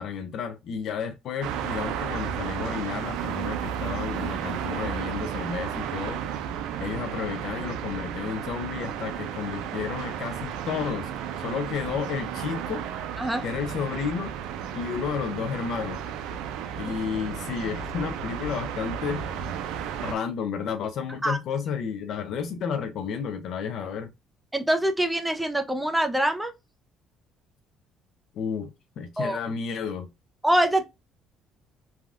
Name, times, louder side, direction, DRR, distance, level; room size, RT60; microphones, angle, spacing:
voice 1, 0.0-6.2 6.8-12.9 13.4-14.3 14.7-16.0 16.8-19.2 20.0-24.1 28.3-28.7 29.0-30.1, left 6 dB, 65° left, 0.4 m, -32 dB
sound 1, 1.4-20.1, right 8 dB, 90° right, 0.4 m, -33 dB
voice 2, 24.5-26.5 29.2-29.4 30.4-30.9, right 1 dB, 5° right, 0.5 m, -24 dB
3.3 x 2.3 x 2.4 m
cardioid pair, 120°, 0 cm